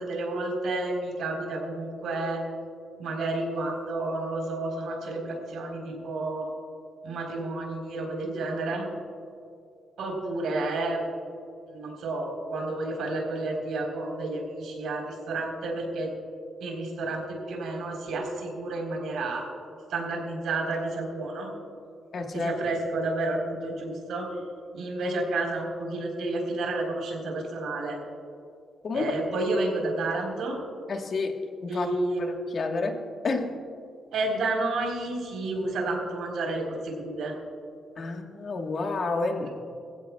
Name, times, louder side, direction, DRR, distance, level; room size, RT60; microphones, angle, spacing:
voice 1, 0.0-2.4 3.0-6.5 7.0-8.9 10.0-11.1 11.7-16.1 16.6-19.4 19.9-21.5 22.3-24.3 24.7-28.0 28.9-30.6 31.7-32.2 34.1-37.3, right 2 dB, 80° right, 0 dB, 3.9 m, -30 dB
voice 2, 22.1-22.5 28.8-29.1 30.9-31.3 31.6-31.9 32.2-33.0 33.2-33.5 38.0-39.5, left 3 dB, 40° left, 3 dB, 1.4 m, -29 dB
23.0 x 15.5 x 2.3 m, 2.4 s
wide cardioid pair, 165°, 0 cm